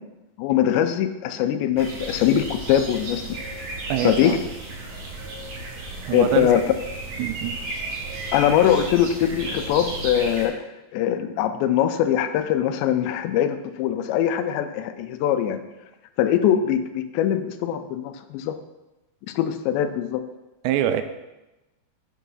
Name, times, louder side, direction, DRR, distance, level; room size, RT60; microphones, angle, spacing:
voice 1, 0.4-3.2 4.0-4.3 6.1-6.6 8.3-10.6 10.9-15.6 16.2-18.5 19.4-20.2, left 10 dB, 85° left, 9 dB, 2.9 m, -22 dB
sound 1, 1.8-10.5, right 2 dB, 60° right, 4.0 m, -34 dB
voice 2, 3.9-4.4 6.1-6.5 7.2-7.6 20.6-21.0, right 11 dB, 85° right, 9 dB, 2.8 m, -24 dB
8.5 x 6.5 x 5.6 m, 1.0 s
omnidirectional pair, 5.0 m